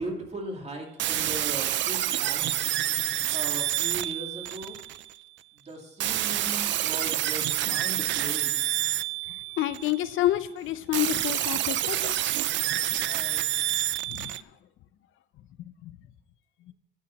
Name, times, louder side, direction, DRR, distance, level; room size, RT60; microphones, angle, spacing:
voice 1, 0.0-2.7 3.3-4.8 5.7-8.6 13.0-13.4, right 2 dB, 35° right, 1 dB, 2.5 m, -38 dB
sound 1, 1.0-5.1 6.0-10.1 10.9-14.4, right 13 dB, 70° right, 0.5 m, -28 dB
voice 2, 9.6-12.2 14.1-14.3 15.8-15.9, left 14 dB, 80° left, 14 dB, 0.6 m, -28 dB
11.5 x 4.9 x 7.1 m, 0.87 s
cardioid pair, 90°, 20 cm